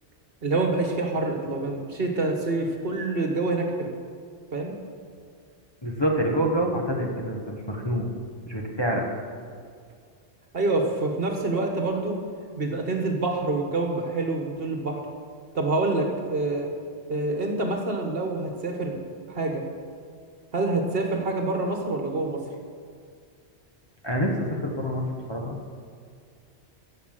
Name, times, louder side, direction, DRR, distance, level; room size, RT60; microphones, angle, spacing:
voice 1, 0.4-3.9 4.5-4.7 10.5-12.1 12.6-15.0 15.5-16.7 17.1-19.0 19.3-19.6 20.5-22.4, right 2 dB, 60° right, 2 dB, 1.5 m, -26 dB
voice 2, 5.8-8.0 8.5-9.0 24.0-25.6, equal, 25° left, -1 dB, 1.4 m, -26 dB
14.0 x 5.4 x 7.6 m, 2.2 s
omnidirectional pair, 1.2 m